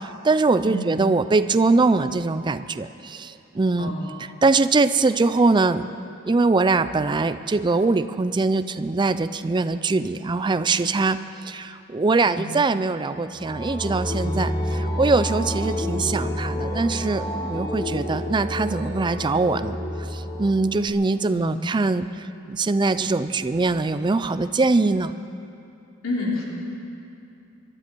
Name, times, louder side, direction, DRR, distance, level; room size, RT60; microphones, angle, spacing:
voice 1, 0.0-3.9 4.2-5.9 6.2-25.1, right 3 dB, 20° right, 12 dB, 0.4 m, -22 dB
sound 1, 13.3-20.9, equal, 20° left, 1.4 m, -29 dB
voice 2, 26.0-26.4, left 2 dB, 75° left, -4 dB, 3.4 m, -28 dB
25.0 x 12.5 x 4.5 m, 2.7 s
head